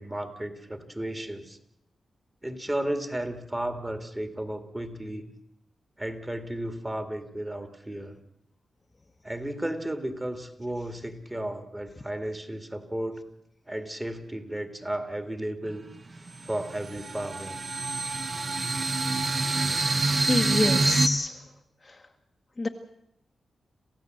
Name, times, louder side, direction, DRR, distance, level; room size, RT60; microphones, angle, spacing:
voice 1, 0.0-1.6 2.4-5.2 6.0-8.2 9.2-13.3 13.7-15.9 16.4-17.6, right 1 dB, 15° right, 8 dB, 2.3 m, -34 dB
sound 1, 15.6-15.7 16.2-21.1, right 3 dB, 35° right, 1.3 m, -26 dB
voice 2, 19.5-20.0 20.3-21.4 22.6-22.7, left 2 dB, 25° left, 4 dB, 1.2 m, -27 dB
27.5 x 15.5 x 7.9 m, 0.80 s
wide cardioid pair, 130°, 0 cm